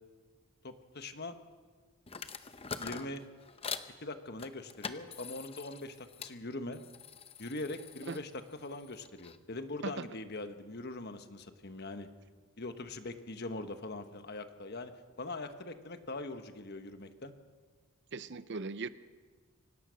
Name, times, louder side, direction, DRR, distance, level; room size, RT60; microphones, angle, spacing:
voice 1, 0.6-1.4 2.8-3.2 4.0-6.8 7.4-8.3 8.6-12.1 12.6-14.9 15.2-17.3, left 2 dB, 45° left, 8 dB, 1.3 m, -42 dB
sound 1, 2.1-3.9 4.4-6.3 6.7-9.4, left 6 dB, 25° left, 0.8 m, -44 dB
voice 2, 18.1-18.9, right 4 dB, 55° right, 14 dB, 0.7 m, -38 dB
24.5 x 17.0 x 6.4 m, 1.5 s
head